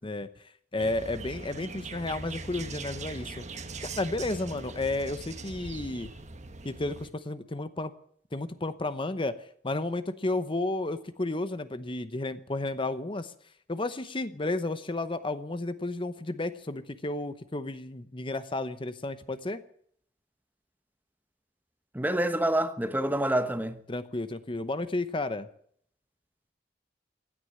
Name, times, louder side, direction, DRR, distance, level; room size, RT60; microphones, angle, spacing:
voice 1, 0.7-3.4 3.8-6.1 6.6-7.9 8.3-9.4 9.6-13.3 13.7-19.6 23.9-25.5, left 2 dB, 30° left, 0.9 m, -32 dB
sound 1, 0.8-7.1, right 3 dB, 40° right, 1.3 m, -41 dB
voice 2, 21.9-23.8, right 1 dB, 10° right, 1.0 m, -27 dB
16.0 x 9.9 x 9.0 m
head